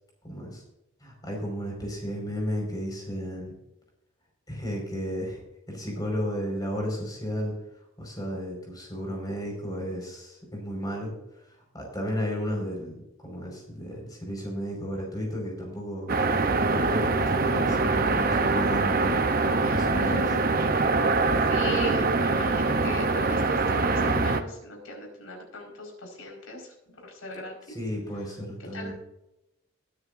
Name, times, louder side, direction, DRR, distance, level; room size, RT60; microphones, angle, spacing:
voice 1, 0.2-0.6 1.0-3.5 4.5-5.4 5.7-7.6 8.0-11.1 11.5-19.3 19.7-20.2 27.7-28.9, equal, 20° left, 0 dB, 5.2 m, -33 dB
sound 1, 16.1-24.4, right 3 dB, 45° right, 0.8 m, -24 dB
voice 2, 19.6-20.4 21.5-26.7 27.1-27.8 28.7-28.9, left 1 dB, 90° left, 1 dB, 5.1 m, -38 dB
20.5 x 9.8 x 2.7 m, 0.86 s
head